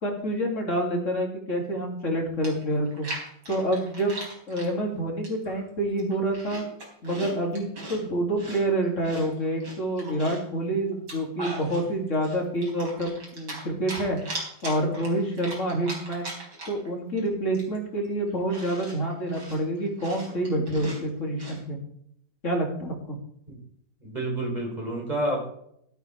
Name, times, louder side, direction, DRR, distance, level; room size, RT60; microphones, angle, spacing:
voice 1, 0.0-3.1 3.5-4.2 4.5-6.6 7.0-14.2 14.6-16.3 16.7-21.8 22.4-23.2, right 1 dB, 45° left, 0 dB, 3.1 m, -27 dB
Chewing mastication, 2.1-2.2 2.4-4.7 5.2-5.6 5.9-8.0 8.4-10.5 10.9-11.8 12.2-13.6 13.9-16.9 17.2-17.3 17.5-21.6, right 1 dB, 75° right, 4.7 m, -39 dB
voice 2, 24.0-25.5, right 1 dB, 25° right, 0 dB, 3.8 m, -29 dB
12.5 x 12.5 x 3.4 m, 0.72 s
omnidirectional pair, 1.8 m